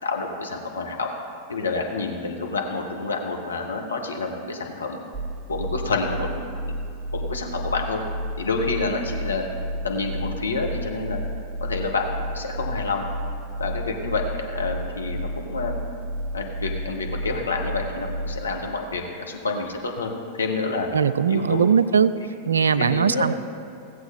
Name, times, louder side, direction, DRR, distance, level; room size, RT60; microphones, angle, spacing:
voice 1, 0.0-1.1 1.5-5.0 5.5-6.3 6.7-6.8 7.1-8.0 8.4-9.4 9.8-11.2 11.6-13.1 13.6-15.7 16.3-20.1 20.4-20.9 21.3-21.6 22.2-22.3 22.7-23.3, left 3 dB, 75° left, 1 dB, 1.2 m, -28 dB
sound 1, 5.1-18.5, right 1 dB, 10° right, 1.1 m, -32 dB
voice 2, 20.9-22.1 22.5-23.3, right 6 dB, 70° right, 14 dB, 0.4 m, -20 dB
17.0 x 7.8 x 3.8 m, 2.5 s
figure-of-eight pair, 90°, 0 cm